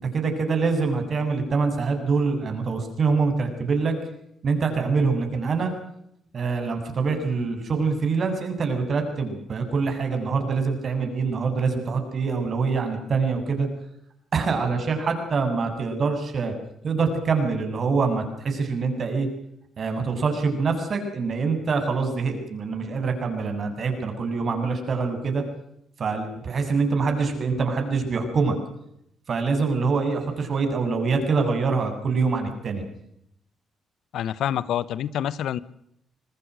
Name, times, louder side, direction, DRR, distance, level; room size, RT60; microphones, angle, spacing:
voice 1, 0.0-3.9 4.4-5.7 6.3-13.7 14.3-16.5 16.8-19.3 19.8-25.4 26.0-28.6 29.3-32.8, right 4 dB, 50° right, 6 dB, 7.5 m, -25 dB
voice 2, 34.1-35.6, left 10 dB, 75° left, 18 dB, 1.1 m, -27 dB
26.5 x 20.0 x 6.3 m, 0.76 s
cardioid pair, 90°, 0 cm